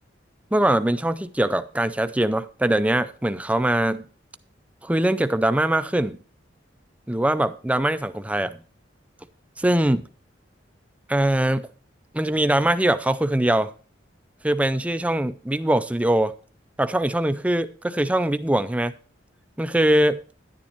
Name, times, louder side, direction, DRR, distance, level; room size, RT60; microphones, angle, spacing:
voice 1, 0.5-4.0 4.8-6.2 7.1-8.6 9.6-10.0 11.1-11.7 12.1-13.7 14.4-16.3 16.8-18.9 19.6-20.2, right 1 dB, 5° right, 0.4 m, -22 dB
10.5 x 10.0 x 2.9 m
head